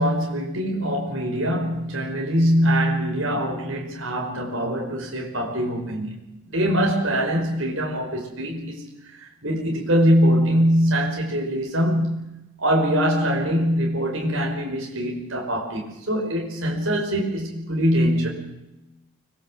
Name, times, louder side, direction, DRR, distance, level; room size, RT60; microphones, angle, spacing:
voice 1, 0.0-6.2 6.5-12.3 12.6-18.3, equal, 60° right, 5.6 m, -23 dB
25.5 x 20.5 x 7.7 m
head